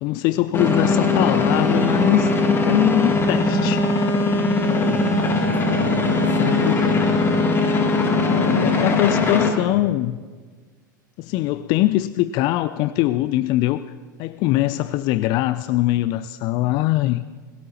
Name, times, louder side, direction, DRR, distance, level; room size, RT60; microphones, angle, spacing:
voice 1, 0.0-4.1 8.2-10.2 11.2-13.8 14.2-17.2, left 15 dB, 45° left, 14 dB, 0.4 m, -22 dB
sound 1, 0.5-9.5, left 3 dB, 20° left, 2.0 m, -20 dB
voice 2, 4.7-6.0 6.4-7.3 8.4-9.9, left 7 dB, 70° left, 7 dB, 1.3 m, -30 dB
20.5 x 18.0 x 2.9 m, 1.5 s
figure-of-eight pair, 85°, 11 cm